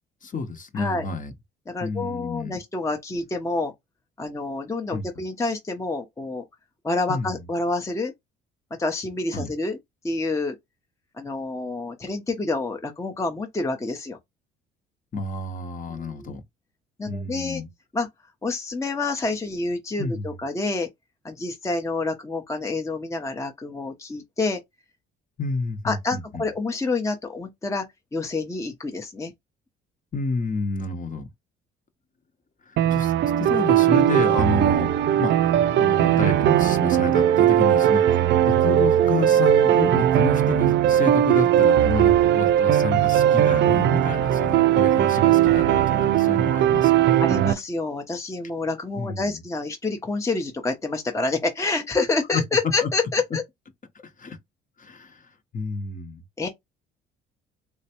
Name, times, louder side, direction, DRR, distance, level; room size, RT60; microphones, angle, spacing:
voice 1, 0.2-1.3 1.8-2.6 4.9-5.1 7.1-7.5 9.3-9.5 15.1-16.4 17.0-17.7 20.0-20.3 25.4-26.4 30.1-31.3 32.7-34.9 35.2-47.2 49.0-49.4 52.3-52.4 52.8-52.9 53.9-54.4 54.8-56.2, left 3 dB, 40° left, 1.0 m, -30 dB
voice 2, 0.7-1.0 1.7-3.7 4.2-6.4 6.8-8.1 8.8-9.8 10.0-10.6 11.2-14.2 15.9-16.3 17.0-17.6 17.9-18.1 18.4-20.9 21.2-24.6 25.8-27.9 28.1-29.3 47.2-53.4 56.4-56.5, left 3 dB, 15° left, 0.7 m, -28 dB
sound 1, 32.8-47.5, right 11 dB, 55° right, 0.4 m, -19 dB
3.3 x 2.8 x 2.9 m
supercardioid pair, 70°, 21 cm